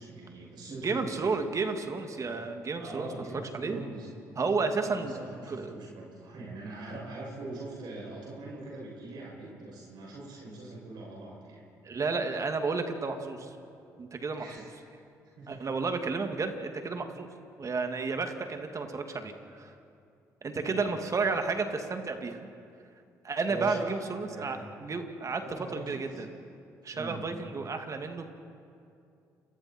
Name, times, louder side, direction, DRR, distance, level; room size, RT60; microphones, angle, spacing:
voice 1, 0.0-1.4 2.8-4.1 4.8-11.6 14.4-14.7 15.4-15.7 20.6-21.0 23.4-24.0 24.3-24.9 25.4-26.2 26.9-27.3, right 2 dB, 65° right, -4 dB, 7.3 m, -42 dB
voice 2, 0.7-3.1 3.5-3.8 4.4-5.1 5.5-5.8 11.8-13.6 14.0-14.5 15.5-17.3 17.6-19.7 20.4-22.5 23.2-25.4 25.7-26.3 26.8-28.3, right 4 dB, 40° right, 6 dB, 2.3 m, -32 dB
29.5 x 24.0 x 4.5 m, 2.5 s
hypercardioid pair, 55°, 8 cm